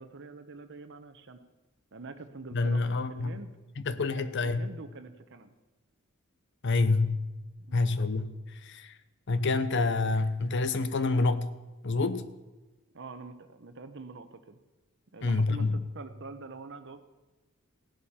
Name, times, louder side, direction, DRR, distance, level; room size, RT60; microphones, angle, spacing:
voice 1, 0.0-1.4 1.9-3.5 4.1-5.5 7.7-7.9 12.9-14.6 15.1-17.0, right 3 dB, 60° right, 9 dB, 0.9 m, -45 dB
voice 2, 2.5-3.4 3.8-4.7 6.6-7.2 7.7-8.3 8.6-8.9 9.3-11.5 11.8-12.3 15.2-15.8, left 3 dB, 60° left, 13 dB, 0.7 m, -27 dB
16.0 x 11.5 x 4.3 m, 1.1 s
head